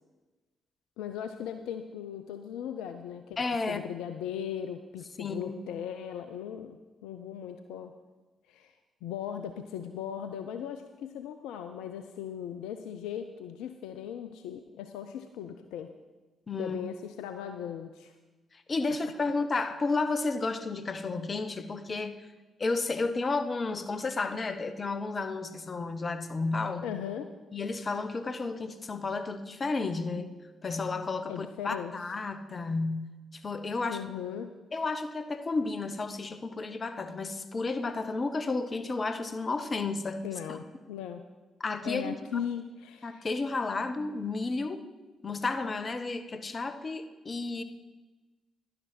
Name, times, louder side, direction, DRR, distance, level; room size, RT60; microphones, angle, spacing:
voice 1, 1.0-7.9 8.5-8.7 9.0-15.9 16.6-18.2 26.8-27.3 31.3-31.9 33.9-34.5 40.2-41.2 41.8-43.3, left 9 dB, 75° left, 8 dB, 0.5 m, -38 dB
voice 2, 3.4-3.8 5.2-5.6 16.5-16.8 18.5-22.2 22.6-26.9 27.5-30.3 30.6-34.0 34.7-40.2 40.5-40.6 41.6-42.4 43.0-44.8 45.2-47.6, left 3 dB, 40° left, 10 dB, 1.0 m, -32 dB
11.0 x 11.0 x 4.4 m, 1.2 s
hypercardioid pair, 40°, 0 cm